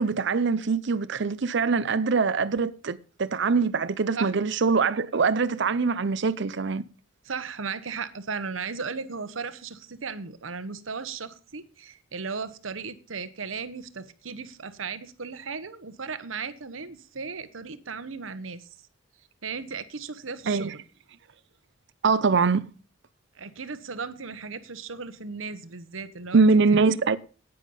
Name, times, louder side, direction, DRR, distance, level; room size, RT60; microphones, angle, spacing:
voice 1, 0.0-6.8 20.5-20.7 22.0-22.6 26.3-27.2, right 4 dB, 65° right, 0.6 m, -23 dB
voice 2, 7.2-18.7 19.4-20.8 23.3-26.8, right 5 dB, 90° right, 1.1 m, -36 dB
10.5 x 9.4 x 5.4 m
head